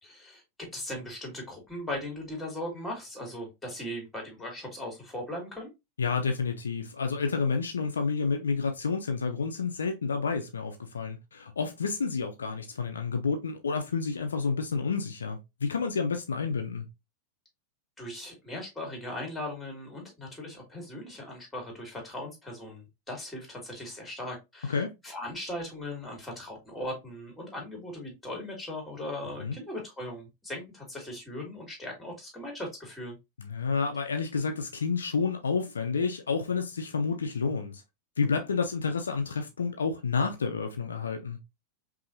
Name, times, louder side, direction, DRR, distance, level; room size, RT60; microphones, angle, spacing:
voice 1, 0.0-5.7 18.0-33.2, left 1 dB, 5° left, 2.3 m, -39 dB
voice 2, 6.0-16.8 24.7-24.9 29.4-29.6 33.4-37.8 38.2-41.4, left 5 dB, 70° left, 0.5 m, -30 dB
5.3 x 2.8 x 2.6 m
figure-of-eight pair, 90°, 0 cm